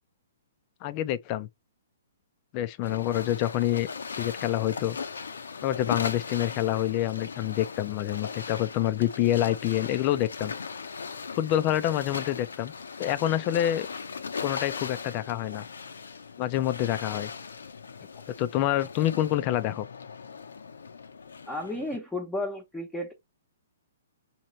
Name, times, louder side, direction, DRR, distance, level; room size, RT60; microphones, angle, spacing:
voice 1, 0.8-1.5 2.5-3.9 4.2-5.0 5.6-10.5 11.4-12.7 13.0-13.9 14.4-15.6 16.4-17.3 18.4-19.9, left 13 dB, 35° left, 0.4 m, -27 dB
sound 1, 2.8-22.0, left 5 dB, 85° left, 0.7 m, -39 dB
voice 2, 21.5-23.1, left 1 dB, 5° left, 0.9 m, -33 dB
3.1 x 2.9 x 4.0 m
hypercardioid pair, 145°, 0 cm